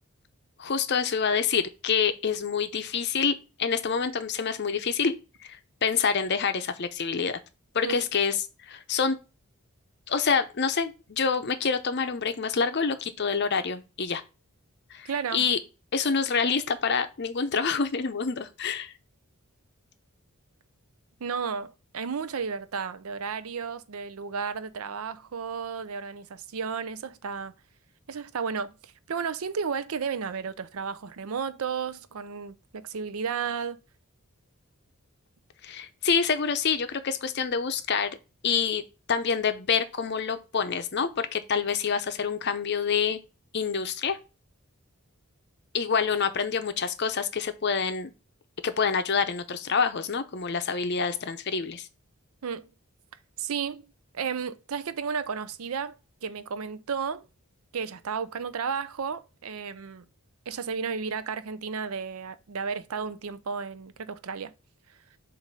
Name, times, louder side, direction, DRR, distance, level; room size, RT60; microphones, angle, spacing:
voice 1, 0.6-5.2 5.4-7.4 7.7-9.2 10.1-14.2 14.9-15.6 15.9-18.9 35.6-38.2 38.4-38.8 39.1-43.2 43.5-44.2 45.7-48.1 48.6-51.9, left 6 dB, 50° left, 0.6 m, -27 dB
voice 2, 15.0-15.5 21.2-27.5 28.1-33.8 52.4-52.7 53.4-53.8 54.1-55.9 56.2-57.2 57.7-60.1 60.5-64.5, right 6 dB, 75° right, 0.5 m, -33 dB
7.2 x 2.6 x 5.2 m
head